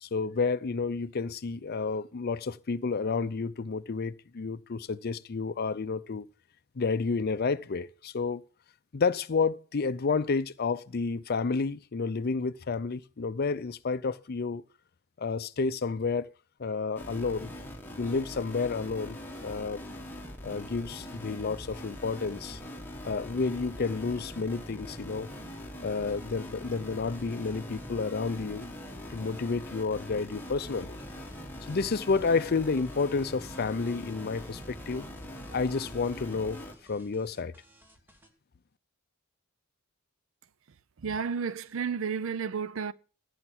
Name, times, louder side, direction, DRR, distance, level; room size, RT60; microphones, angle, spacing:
voice 1, 0.0-6.3 6.8-8.4 8.9-14.6 15.2-16.3 16.6-17.5 18.0-19.8 20.4-22.6 23.0-25.3 25.8-28.7 29.1-30.9 31.7-35.1 35.5-36.6 36.9-37.5, left 4 dB, 50° left, 0.5 m, -30 dB
sound 1, 17.0-36.7, left 1 dB, 10° left, 1.6 m, -42 dB
sound 2, 25.9-38.3, equal, 10° right, 1.3 m, -60 dB
voice 2, 41.0-42.9, right 6 dB, 65° right, 0.5 m, -32 dB
14.0 x 5.8 x 6.0 m
head